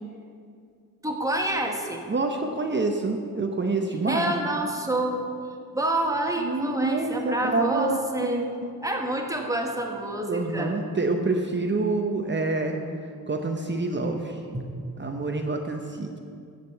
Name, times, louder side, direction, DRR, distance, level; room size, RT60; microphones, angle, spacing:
voice 1, 1.0-2.0 4.1-5.3 5.7-8.4 8.8-10.7 14.5-14.6, right 1 dB, 10° right, 2 dB, 1.4 m, -28 dB
voice 2, 2.1-4.3 6.4-8.7 10.3-12.8 13.3-14.4 15.0-16.2, right 3 dB, 30° right, 4 dB, 0.9 m, -27 dB
14.0 x 5.3 x 7.7 m, 2.3 s
cardioid pair, 105°, 36 cm